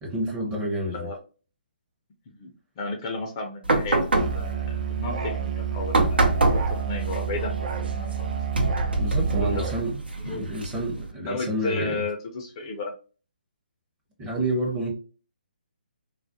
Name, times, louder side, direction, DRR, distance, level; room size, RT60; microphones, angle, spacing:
voice 1, 0.0-1.1 9.0-12.0 14.2-14.9, right 1 dB, 15° right, 0.7 m, -29 dB
voice 2, 2.4-8.3 9.3-9.7 10.2-10.4 11.2-12.9, left 3 dB, 30° left, 0.5 m, -33 dB
sound 1, 3.6-11.1, right 2 dB, 85° right, 0.7 m, -26 dB
Musical instrument, 4.2-9.9, right 7 dB, 45° right, 0.3 m, -30 dB
2.3 x 2.0 x 2.6 m
figure-of-eight pair, 145°, 5 cm